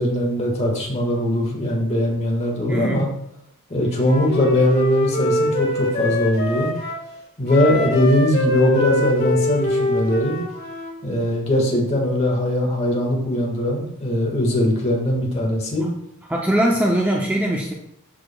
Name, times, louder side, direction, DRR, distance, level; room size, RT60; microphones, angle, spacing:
voice 1, 0.0-3.1 3.7-6.7 7.4-10.4 11.0-15.9, left 1 dB, 30° left, -1 dB, 1.7 m, -20 dB
voice 2, 2.7-3.0 16.3-17.7, right 1 dB, 5° right, -2 dB, 0.6 m, -21 dB
Wind instrument woodwind instrument, 4.0-7.0 7.5-11.0, left 1 dB, 45° left, 1.5 m, -23 dB
12.5 x 4.8 x 2.3 m, 0.77 s
head